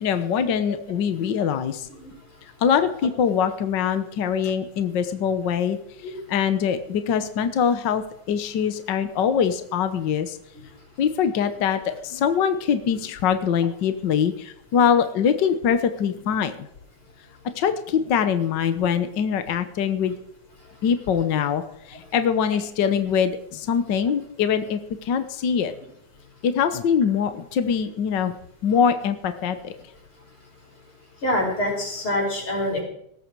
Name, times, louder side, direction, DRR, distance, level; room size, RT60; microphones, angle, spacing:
voice 1, 0.0-1.9 2.6-10.4 11.0-16.7 17.6-20.1 20.8-25.7 26.4-28.3 28.6-29.7, left 7 dB, 60° left, 9 dB, 1.2 m, -23 dB
voice 2, 31.2-32.8, left 1 dB, 45° left, 1 dB, 6.5 m, -25 dB
18.0 x 14.0 x 4.7 m, 0.72 s
omnidirectional pair, 3.3 m